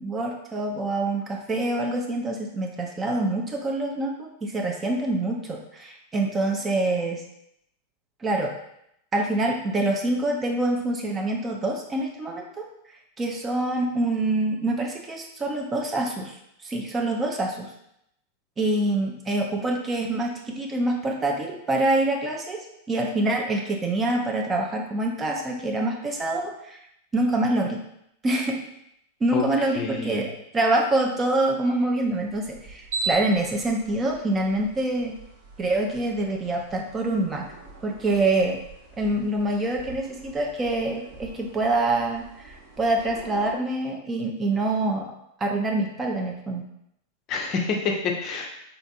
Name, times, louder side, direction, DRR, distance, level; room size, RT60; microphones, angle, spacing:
voice 1, 0.0-7.2 8.2-8.5 9.1-12.7 13.2-16.3 16.6-17.7 18.6-26.8 27.1-27.8 28.2-28.6 29.2-35.2 35.6-37.4 37.8-38.6 39.0-45.1 45.4-46.6, right 2 dB, 20° right, 1 dB, 0.4 m, -26 dB
voice 2, 29.8-30.3 47.3-48.5, left 5 dB, 35° left, 1 dB, 0.5 m, -27 dB
sound 1, 31.9-43.5, right 3 dB, 60° right, 1.2 m, -40 dB
3.8 x 2.5 x 2.4 m, 0.77 s
figure-of-eight pair, 90°, 0 cm